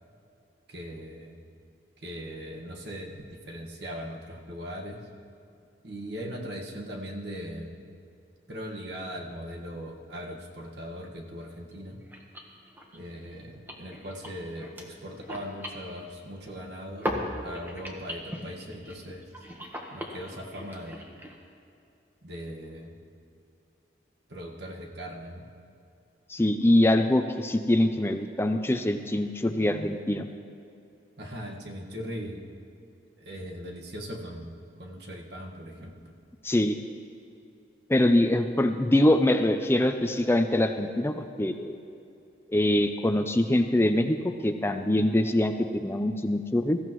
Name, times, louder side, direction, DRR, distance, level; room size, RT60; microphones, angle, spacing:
voice 1, 0.7-1.4 2.0-5.0 5.8-7.9 8.5-12.0 12.9-17.1 17.4-19.4 19.9-21.0 22.2-22.9 24.3-25.4 31.2-32.4 33.2-36.1, equal, 65° right, 0 dB, 1.6 m, -39 dB
sound 1, 11.4-11.5 11.7-11.8 12.0-16.7 17.0-21.4, equal, 10° right, 1.2 m, -39 dB
voice 2, 26.3-30.3 36.4-36.8 37.9-41.8 42.5-46.8, left 1 dB, 15° left, 7 dB, 0.4 m, -24 dB
20.5 x 14.5 x 3.1 m, 2.6 s
head